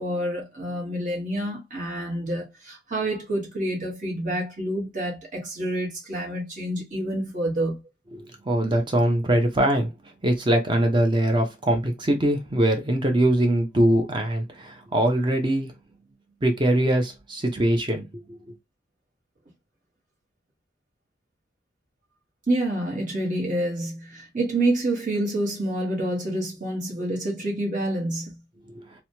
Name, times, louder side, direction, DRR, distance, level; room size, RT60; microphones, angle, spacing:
voice 1, 0.0-7.8 22.5-28.4, right 1 dB, 45° right, 1.2 m, -28 dB
voice 2, 8.5-9.9 10.2-15.7 16.4-18.1, right 1 dB, 25° right, 0.6 m, -22 dB
2.9 x 2.1 x 2.8 m
head